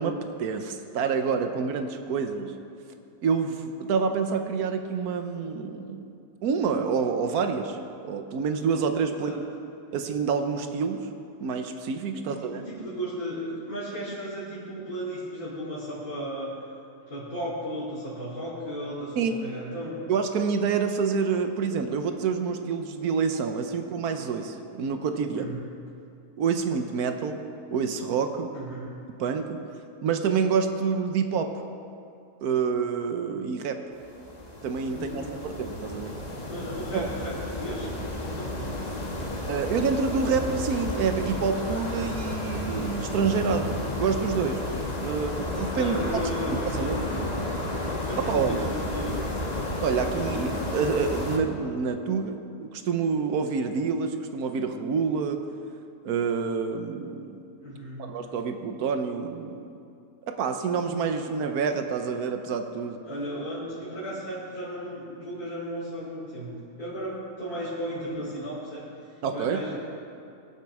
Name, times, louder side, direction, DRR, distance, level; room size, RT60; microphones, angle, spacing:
voice 1, 0.0-2.5 3.2-6.0 6.4-7.8 8.0-9.4 9.9-11.1 11.4-12.6 19.2-19.4 20.1-25.5 26.4-27.4 27.7-28.5 29.1-29.6 30.0-31.5 32.4-33.8 34.6-36.1 36.9-37.1 39.5-44.6 45.0-46.2 46.7-47.0 48.3-48.6 49.8-55.4 56.0-57.4 58.0-59.6 60.4-63.0 69.2-69.6, right 5 dB, 70° right, 6 dB, 1.4 m, -27 dB
voice 2, 9.1-9.4 12.1-16.5 17.1-20.0 25.3-25.6 28.5-29.0 34.8-35.5 36.5-37.9 38.2-38.7 45.7-47.2 48.0-49.2 57.6-58.1 63.1-68.8 69.3-69.7, equal, 65° left, -11 dB, 4.0 m, -35 dB
sound 1, 33.9-51.4, left 1 dB, 25° left, 1.4 m, -32 dB
22.5 x 7.5 x 4.9 m, 2.5 s
omnidirectional pair, 1.7 m